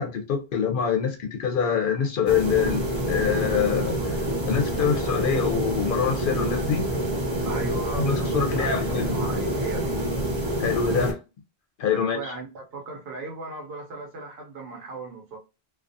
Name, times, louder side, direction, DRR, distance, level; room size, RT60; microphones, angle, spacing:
voice 1, 0.0-6.9 7.9-9.1 10.6-11.2 11.8-12.3, left 7 dB, 65° left, 0.7 m, -25 dB
sound 1, 2.3-11.1, right 1 dB, 30° right, 0.6 m, -27 dB
voice 2, 7.4-10.0 11.9-15.4, right 3 dB, 75° right, 1.0 m, -36 dB
2.4 x 2.2 x 2.6 m
omnidirectional pair, 1.0 m